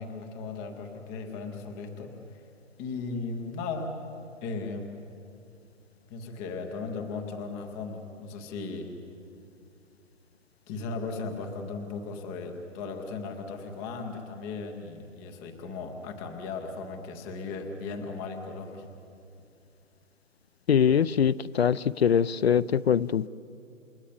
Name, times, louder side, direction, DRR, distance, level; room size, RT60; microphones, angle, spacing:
voice 1, 0.0-2.5 2.8-4.0 4.4-4.9 6.1-8.9 10.7-18.9, left 4 dB, 5° left, 3 dB, 0.5 m, -37 dB
voice 2, 20.7-23.3, left 8 dB, 50° left, 16 dB, 0.6 m, -23 dB
30.0 x 18.5 x 9.9 m, 2.6 s
hypercardioid pair, 150°, 40 cm